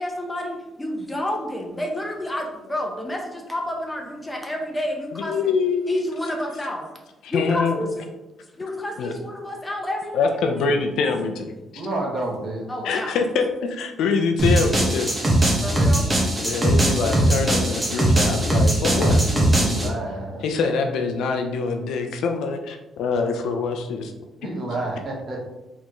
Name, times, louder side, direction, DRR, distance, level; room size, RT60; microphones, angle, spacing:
voice 1, 0.0-5.6 5.9-6.9 7.3-7.9 8.6-10.8 12.7-13.2 15.6-16.1 16.3-16.5, left 1 dB, 15° left, 1 dB, 1.0 m, -29 dB
voice 2, 5.1-5.9 7.2-7.8 9.0-9.1 10.1-11.8 12.8-15.1 16.4-20.0 20.4-24.1, left 4 dB, 80° left, 5 dB, 0.5 m, -25 dB
voice 3, 11.7-12.6 19.6-20.4 24.4-25.4, right 2 dB, 50° right, -2 dB, 1.3 m, -29 dB
sound 1, 14.4-19.9, right 1 dB, 20° right, 1.3 m, -20 dB
4.3 x 3.5 x 3.0 m, 1.0 s
cardioid pair, 90°, 0 cm